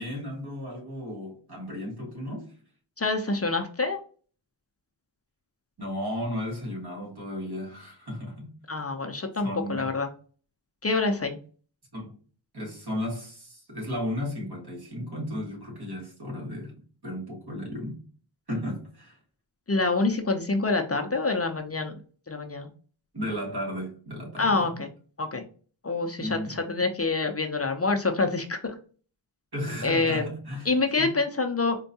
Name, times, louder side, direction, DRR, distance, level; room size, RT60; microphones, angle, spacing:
voice 1, 0.0-2.5 5.8-8.6 9.4-9.9 11.9-12.2 12.5-16.7 17.0-18.0 18.5-19.2 23.1-24.7 26.2-26.6 29.5-31.1, left 1 dB, 55° right, 1.6 m, -34 dB
voice 2, 3.0-4.0 8.7-10.1 10.8-11.4 19.7-21.9 22.3-22.7 24.4-24.9 25.2-25.4 25.8-28.8 29.8-30.3 30.7-31.8, left 3 dB, 30° left, 0.5 m, -26 dB
4.4 x 2.2 x 2.7 m
wide cardioid pair, 65°, 47 cm